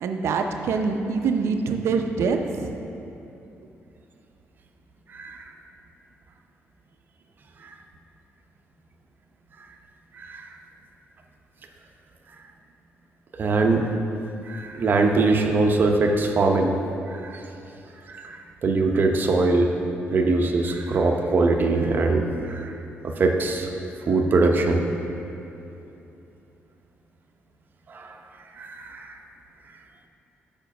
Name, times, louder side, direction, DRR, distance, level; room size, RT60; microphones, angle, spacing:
voice 1, 0.0-2.7, right 5 dB, 80° right, 5 dB, 0.6 m, -25 dB
voice 2, 5.1-5.4 7.6-7.7 10.1-10.5 13.4-13.9 14.5-16.8 17.1-17.4 18.1-19.7 20.1-22.8 23.0-23.7 24.1-24.9 27.9-28.2 28.5-29.2, right 3 dB, 45° right, 3 dB, 0.7 m, -22 dB
7.0 x 5.1 x 5.8 m, 2.8 s
cardioid pair, 120°, 5 cm